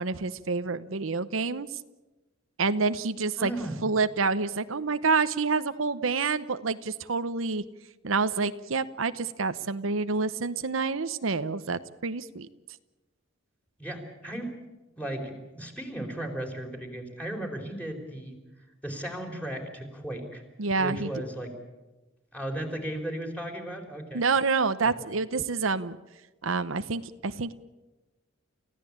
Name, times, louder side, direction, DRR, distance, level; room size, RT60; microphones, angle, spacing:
voice 1, 0.0-1.7 2.6-3.5 3.8-7.6 8.0-12.5 20.6-21.1 24.1-26.0 26.4-27.5, right 4 dB, 85° right, 12 dB, 0.9 m, -28 dB
voice 2, 3.4-3.8 13.8-14.5 15.0-18.4 18.8-20.4 20.8-21.5 22.3-24.2 24.8-24.9, right 1 dB, 5° left, 2 dB, 4.3 m, -35 dB
30.0 x 15.5 x 8.7 m, 1.1 s
head